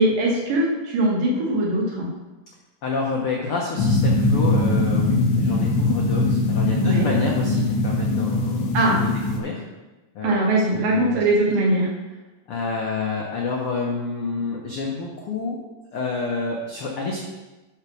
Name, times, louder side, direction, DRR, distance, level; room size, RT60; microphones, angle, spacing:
voice 1, 0.0-2.1 6.8-7.1 8.7-9.0 10.2-11.9, right 1 dB, 70° right, -3 dB, 3.4 m, -21 dB
voice 2, 2.8-8.7 9.0-9.6 10.1-10.4 10.7-11.2 12.5-15.6 15.9-17.2, left 4 dB, 75° left, -2 dB, 1.2 m, -28 dB
sound 1, 3.8-9.4, left 2 dB, 55° left, 1.8 m, -21 dB
10.5 x 4.8 x 6.2 m, 1.1 s
omnidirectional pair, 4.2 m